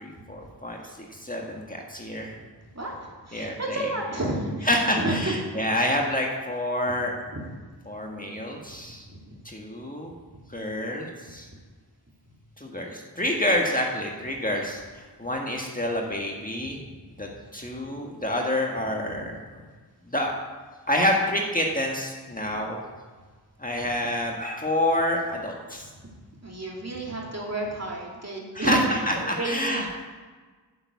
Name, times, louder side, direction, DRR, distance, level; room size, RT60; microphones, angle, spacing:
voice 1, 0.0-2.4 3.3-4.0 4.6-7.1 7.8-9.0 9.4-10.1 10.5-11.5 12.6-16.8 17.2-19.4 20.1-20.3 20.9-22.8 23.6-25.9 28.5-30.0, left 1 dB, 20° left, 0 dB, 1.6 m, -28 dB
voice 2, 2.7-5.3 7.3-7.4 8.7-8.8 9.0-9.3 16.7-16.8 17.2-17.3 19.1-19.3 26.4-28.8 29.1-29.8, right 1 dB, 40° right, -2 dB, 2.7 m, -31 dB
8.1 x 7.1 x 8.4 m, 1.4 s
wide cardioid pair, 50°, 42 cm